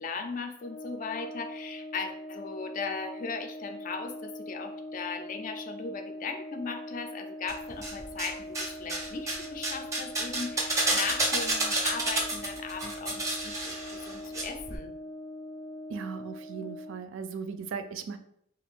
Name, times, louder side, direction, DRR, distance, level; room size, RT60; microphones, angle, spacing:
voice 1, 0.0-14.9, left 4 dB, 45° left, 7 dB, 0.3 m, -38 dB
Brass instrument, 0.6-17.0, left 1 dB, 85° left, 0.6 m, -42 dB
sound 1, 7.5-8.3 8.5-14.4 14.7-14.8, right 2 dB, 15° right, 0.5 m, -30 dB
voice 2, 15.9-18.2, right 6 dB, 80° right, 9 dB, 0.3 m, -37 dB
2.4 x 2.4 x 3.4 m, 0.73 s
head